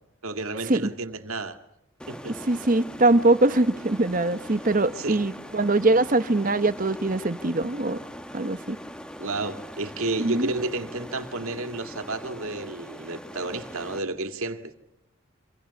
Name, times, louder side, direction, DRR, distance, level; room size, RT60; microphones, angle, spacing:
voice 1, 0.2-1.6 2.1-2.4 5.0-5.2 9.2-14.7, right 2 dB, 85° right, 2.2 m, -31 dB
sound 1, 2.0-14.0, equal, 5° left, 1.1 m, -41 dB
voice 2, 2.4-8.0 8.3-8.8 10.2-10.5, right 2 dB, 40° right, 0.9 m, -22 dB
28.0 x 26.0 x 7.0 m
head